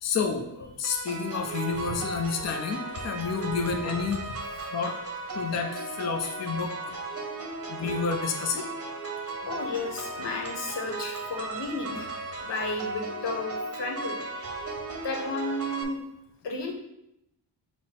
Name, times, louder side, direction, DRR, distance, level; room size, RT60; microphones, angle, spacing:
voice 1, 0.0-4.3 4.7-5.0 5.3-7.0 7.7-8.7 9.4-9.5, left 5 dB, 40° left, 3 dB, 0.5 m, -30 dB
sound 1, 0.8-15.8, right 3 dB, 35° right, 0.7 m, -36 dB
voice 2, 9.5-12.1 12.4-14.7 15.0-16.0 16.4-16.7, left 2 dB, 90° left, 1 dB, 0.9 m, -33 dB
5.7 x 2.1 x 4.2 m, 0.83 s
wide cardioid pair, 135°, 41 cm